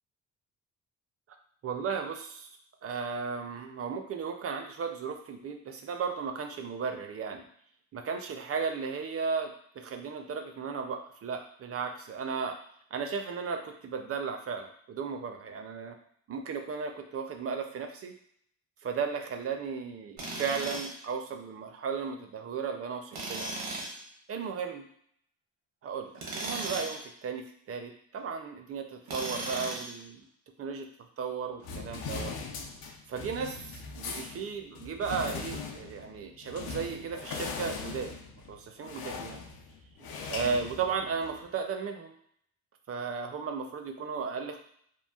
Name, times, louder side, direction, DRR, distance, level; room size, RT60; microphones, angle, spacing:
voice 1, 1.6-2.5 2.8-7.5 7.9-12.6 12.9-15.9 16.3-18.1 18.8-23.7 24.3-24.8 25.8-30.3 30.6-30.9 31.2-32.3 33.1-38.1 38.5-39.4 40.3-42.1 42.9-44.6, right 5 dB, 40° right, 5 dB, 0.4 m, -35 dB
Tools, 20.2-21.0 23.1-24.0 26.1-27.0 29.1-30.0, right 2 dB, 80° right, 0.9 m, -36 dB
sound 1, 31.6-41.4, left 5 dB, 80° left, 0.5 m, -40 dB
3.0 x 2.4 x 2.3 m, 0.66 s
cardioid pair, 95°, 36 cm